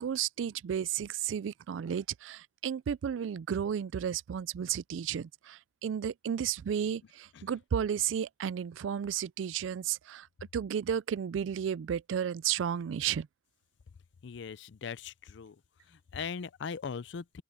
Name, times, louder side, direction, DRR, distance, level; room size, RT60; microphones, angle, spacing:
voice 1, 0.0-10.3 10.5-13.3, right 8 dB, 85° right, 0.3 m, -33 dB
voice 2, 14.2-15.6 15.9-17.4, left 6 dB, 70° left, 0.5 m, -40 dB
open air
head